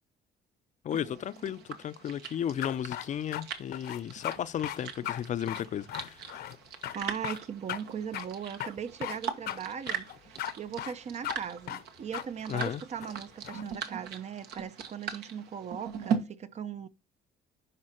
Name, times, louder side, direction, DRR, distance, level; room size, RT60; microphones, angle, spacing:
voice 1, 0.8-6.2 12.5-12.8, left 9 dB, 45° left, 0.5 m, -34 dB
sound 1, 0.9-16.2, right 7 dB, 75° right, 1.4 m, -40 dB
sound 2, 2.6-3.4 3.7-4.4 4.6-4.8 5.0-5.2 5.5-6.6 6.8-6.9 7.2-7.4 7.7-7.8 8.1-8.3 8.6-9.2 9.5-9.6 9.9-10.5 10.8-11.0 11.2-11.3 11.7-11.8 12.1-12.2 12.6-12.7 13.0-13.7, left 12 dB, 70° left, 0.9 m, -37 dB
voice 2, 6.9-16.9, right 7 dB, 40° right, 0.7 m, -39 dB
11.0 x 4.4 x 4.4 m
cardioid pair, 110°, 17 cm